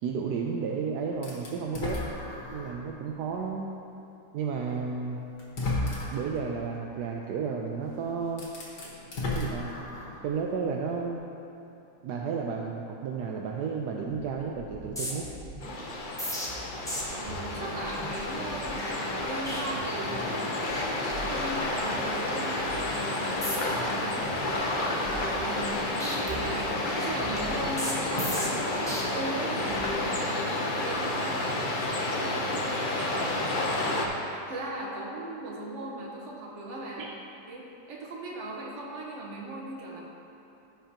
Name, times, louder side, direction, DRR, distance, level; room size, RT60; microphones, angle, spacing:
voice 1, 0.0-2.0 2.5-3.7 4.3-5.2 6.1-8.5 9.3-9.7 10.2-11.2 12.0-15.3 15.9-16.0 37.0-37.1, right 5 dB, 75° right, 0 dB, 1.2 m, -32 dB
sound 1, 1.2-2.8 3.4-3.5 4.7-4.8 5.4-6.4 7.8-7.9 8.3-10.3, left 2 dB, 70° left, 2.0 m, -33 dB
sound 2, 14.0-14.3 14.6-20.3 20.6-20.8 21.1-22.1 22.5-22.7 23.3-23.8 24.2-25.7 26.0-29.0 29.6-29.9, equal, 5° left, 0.8 m, -38 dB
sound 3, 15.6-34.1, left 2 dB, 45° left, 0.7 m, -30 dB
voice 2, 17.1-20.9 21.3-32.5 32.8-33.4 33.7-37.1 37.5-40.0, right 1 dB, 45° right, -3 dB, 1.4 m, -38 dB
15.0 x 5.5 x 2.9 m, 2.9 s
omnidirectional pair, 1.8 m